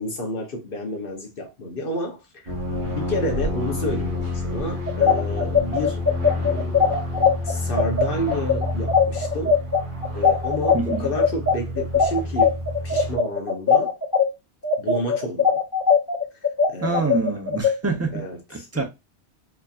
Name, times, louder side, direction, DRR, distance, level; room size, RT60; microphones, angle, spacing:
voice 1, 0.0-2.5 2.8-6.0 6.4-6.9 7.4-9.6 10.1-12.5 12.8-13.9 14.8-15.6 16.7-17.2 18.1-18.8, left 1 dB, 55° left, 1.2 m, -30 dB
sound 1, 2.5-13.2, left 1 dB, 70° right, 1.8 m, -29 dB
sound 2, 4.9-14.3 14.6-17.7, left 6 dB, 20° left, 1.2 m, -20 dB
voice 2, 10.7-11.1 16.8-18.8, right 3 dB, 15° right, 0.6 m, -26 dB
4.4 x 2.7 x 2.4 m
omnidirectional pair, 1.2 m